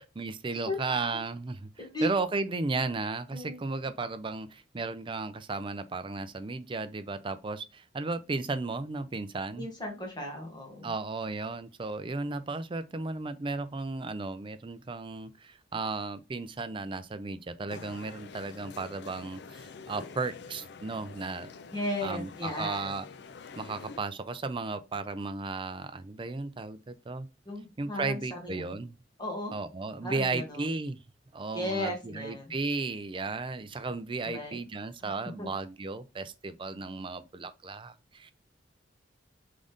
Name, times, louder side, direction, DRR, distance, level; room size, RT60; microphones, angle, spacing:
voice 1, 0.2-1.7 2.0-9.7 10.8-21.5 22.0-23.1 23.6-27.3 27.8-29.0 29.5-31.0 31.3-38.3, right 3 dB, 30° right, 0.4 m, -34 dB
voice 2, 1.8-2.1 3.3-3.6 9.6-10.9 21.7-23.0 27.5-28.7 29.2-29.5 30.0-30.8 31.5-32.5 34.3-34.6 35.0-35.1 35.4-35.5, left 1 dB, 25° left, 1.8 m, -35 dB
sound 1, 17.7-24.0, left 5 dB, 65° left, 0.4 m, -47 dB
3.9 x 3.7 x 3.5 m
head